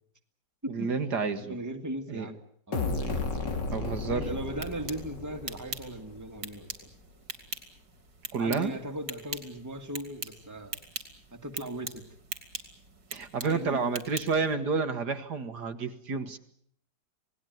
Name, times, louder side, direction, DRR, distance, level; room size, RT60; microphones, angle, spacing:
voice 1, 0.7-1.6 2.1-2.3 3.7-4.4 8.3-8.7 13.1-16.4, right 4 dB, 70° right, 8 dB, 2.1 m, -30 dB
voice 2, 1.5-2.4 2.7-3.1 4.1-6.9 8.4-10.8 11.3-12.0 13.4-14.0, right 1 dB, 10° right, 4 dB, 2.1 m, -38 dB
sound 1, 2.7-6.4, left 3 dB, 80° left, 3.4 m, -33 dB
sound 2, 4.4-14.5, right 4 dB, 85° right, 3.6 m, -43 dB
27.5 x 19.0 x 9.4 m, 0.65 s
omnidirectional pair, 1.9 m